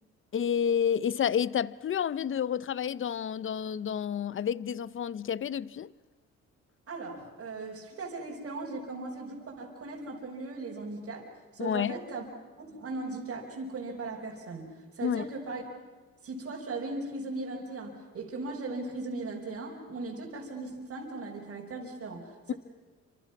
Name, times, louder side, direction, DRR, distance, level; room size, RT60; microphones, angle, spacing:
voice 1, 0.3-5.9 11.6-11.9 15.0-15.2, left 8 dB, 40° left, 0.7 m, -30 dB
voice 2, 6.9-12.3 12.6-15.7 16.2-22.5, right 3 dB, 50° right, 5.2 m, -38 dB
28.5 x 26.5 x 6.0 m
cardioid pair, 90°, 30 cm